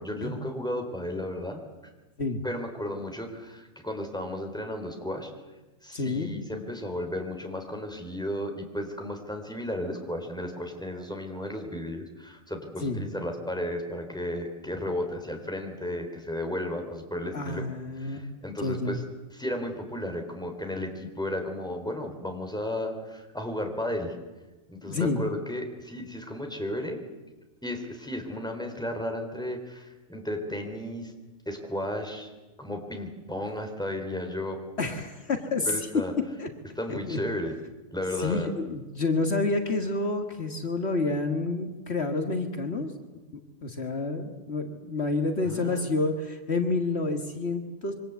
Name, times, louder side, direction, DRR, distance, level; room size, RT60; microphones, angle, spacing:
voice 1, 0.0-1.6 2.4-5.3 5.8-17.6 18.0-19.0 19.3-24.2 24.7-27.0 27.6-31.1 31.5-32.3 32.6-34.6 35.7-36.1 36.8-37.5 37.9-38.5 45.4-46.0, left 1 dB, 5° left, 4 dB, 3.7 m, -34 dB
voice 2, 5.9-6.3 12.8-13.0 17.3-18.3 18.6-19.0 24.8-25.2 34.8-35.7 36.4-36.5 36.9-37.2 38.2-42.9 43.6-47.9, left 3 dB, 60° left, 5 dB, 2.0 m, -29 dB
26.0 x 24.0 x 8.3 m, 1.1 s
omnidirectional pair, 1.2 m